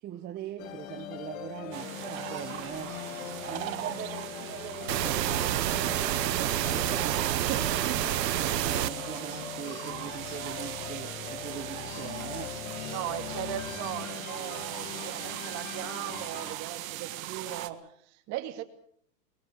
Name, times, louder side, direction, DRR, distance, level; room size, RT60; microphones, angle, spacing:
voice 1, 0.0-3.0 3.5-7.3 7.9-12.6, right 11 dB, 20° right, 1.0 m, -41 dB
sound 1, 0.6-16.6, left 11 dB, 55° left, 1.8 m, -41 dB
sound 2, 1.7-17.7, right 15 dB, 55° right, 1.6 m, -39 dB
sound 3, 4.9-8.9, right 14 dB, 75° right, 0.9 m, -28 dB
voice 2, 7.2-7.9 10.6-10.7 12.9-18.6, right 13 dB, 35° right, 2.3 m, -38 dB
23.0 x 20.5 x 7.1 m
hypercardioid pair, 140°, 49 cm